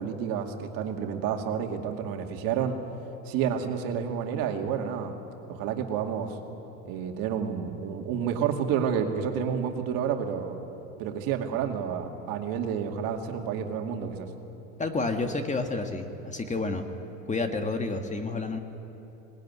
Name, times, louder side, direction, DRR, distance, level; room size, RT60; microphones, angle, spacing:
voice 1, 0.0-2.7 3.3-5.2 5.5-6.4 6.8-10.6 11.0-14.3, right 7 dB, 60° right, 4 dB, 2.4 m, -30 dB
voice 2, 14.8-16.8 17.3-18.6, left 3 dB, 20° left, 6 dB, 1.8 m, -30 dB
19.5 x 19.0 x 9.7 m, 3.0 s
supercardioid pair, 100°, 39 cm